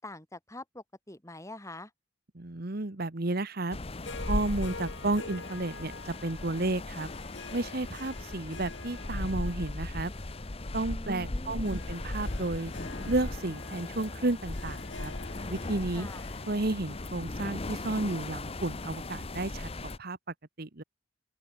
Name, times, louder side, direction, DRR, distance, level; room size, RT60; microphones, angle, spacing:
voice 1, 0.0-1.9 10.9-11.7 15.9-16.2, left 2 dB, 15° left, 6.5 m, -45 dB
voice 2, 2.3-3.8 4.3-7.1 7.5-10.1 10.7-12.7 13.1-15.1 15.5-16.1 16.5-19.7 20.0-20.2 20.6-20.8, right 2 dB, 55° right, 1.4 m, -32 dB
sound 1, 3.7-20.0, left 2 dB, 30° left, 0.9 m, -38 dB
Harp, 4.0-18.4, left 3 dB, 80° left, 5.6 m, -48 dB
open air
head